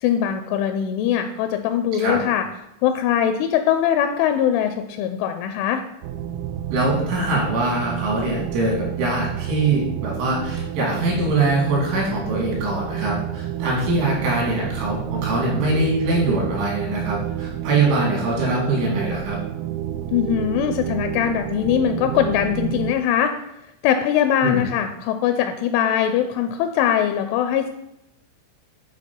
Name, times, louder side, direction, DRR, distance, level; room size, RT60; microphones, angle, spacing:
voice 1, 0.0-2.5 2.8-5.8 20.1-23.3 23.8-27.7, left 9 dB, 85° left, 7 dB, 2.9 m, -21 dB
sound 1, 6.0-22.9, right 10 dB, 90° right, 3.3 m, -29 dB
voice 2, 6.7-19.4 24.4-24.6, right 2 dB, 75° right, -3 dB, 5.2 m, -23 dB
10.5 x 4.4 x 4.5 m, 0.85 s
omnidirectional pair, 5.7 m